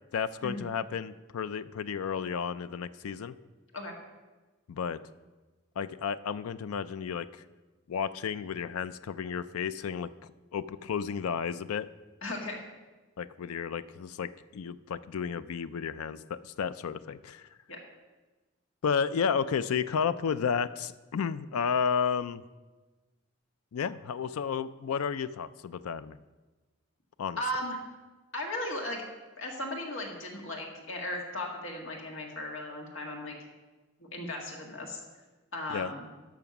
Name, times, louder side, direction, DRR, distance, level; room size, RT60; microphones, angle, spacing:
voice 1, 0.1-3.4 4.7-5.0 5.8-7.4 7.9-10.1 10.5-11.9 13.2-17.5 18.8-22.4 23.7-26.2 27.2-27.4 35.7-35.9, left 6 dB, 90° left, 14 dB, 0.4 m, -32 dB
voice 2, 12.2-12.6 17.7-17.8 27.4-27.8 28.3-29.0 29.4-33.4 34.1-35.0 35.5-36.1, left 1 dB, 60° left, 0 dB, 1.8 m, -36 dB
12.5 x 5.9 x 5.9 m, 1.2 s
head